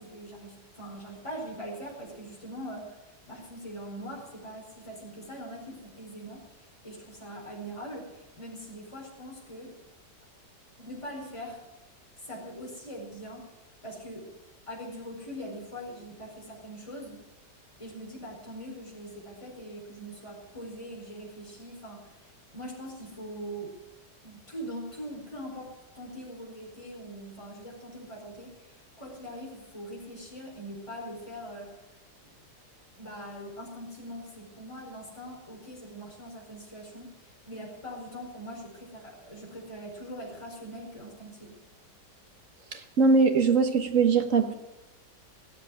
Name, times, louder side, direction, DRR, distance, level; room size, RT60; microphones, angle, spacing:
voice 1, 0.0-3.0 3.3-6.4 6.8-9.8 10.8-11.6 12.2-13.5 13.8-14.3 14.7-17.2 17.8-22.2 22.5-23.7 24.2-31.7 32.2-32.4 33.0-41.5, equal, 15° left, -3 dB, 4.9 m, -42 dB
voice 2, 42.7-44.5, right 4 dB, 50° right, 7 dB, 1.6 m, -22 dB
17.5 x 7.9 x 9.8 m, 0.96 s
omnidirectional pair, 1.8 m